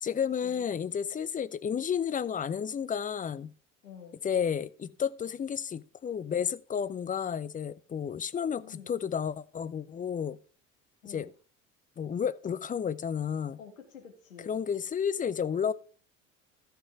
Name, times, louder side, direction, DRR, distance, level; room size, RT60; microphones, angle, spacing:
voice 1, 0.0-3.5 4.2-10.4 11.0-11.3 12.0-13.6 14.5-15.7, left 7 dB, 20° left, 0.6 m, -32 dB
voice 2, 3.8-4.2 8.6-8.9 11.0-11.3 13.6-14.6, left 7 dB, 80° left, 2.2 m, -49 dB
14.5 x 5.9 x 3.6 m
figure-of-eight pair, 60°, 39 cm